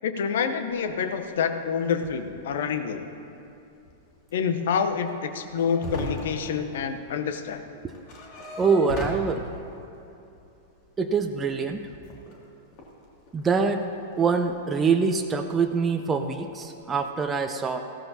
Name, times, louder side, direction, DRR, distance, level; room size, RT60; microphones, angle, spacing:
voice 1, 0.0-3.0 4.3-7.6, left 6 dB, 65° left, 8 dB, 0.8 m, -27 dB
sound 1, 0.7-1.0 1.6-1.7 2.0-2.6 2.9-3.0 3.3-3.4 3.8-4.1 4.4-7.2 7.4-9.8 10.4-12.4 12.7-13.8 14.3-15.1 15.4-15.8 16.1-16.4 16.7-17.1, left 1 dB, 45° left, 2.3 m, -39 dB
voice 2, 8.6-9.5 11.0-11.9 13.3-13.8 14.2-17.8, right 5 dB, 20° right, 5 dB, 0.6 m, -24 dB
15.5 x 13.0 x 2.8 m, 2.8 s
figure-of-eight pair, 100°, 0 cm